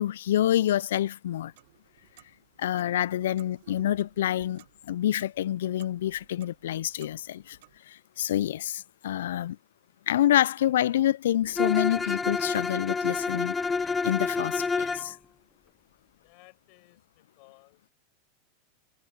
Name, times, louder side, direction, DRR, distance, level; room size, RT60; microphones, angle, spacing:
voice 1, 0.0-1.5 2.6-7.6 7.9-9.6 10.1-13.5 14.0-15.2, left 12 dB, 70° left, 0.5 m, -27 dB
Clock, 1.3-7.8, right 18 dB, 60° right, 7.5 m, -58 dB
Bowed string instrument, 11.6-15.1, left 4 dB, 15° left, 1.0 m, -28 dB
voice 2, 16.2-17.8, left 36 dB, 55° left, 5.5 m, -57 dB
hypercardioid pair, 90°, 0 cm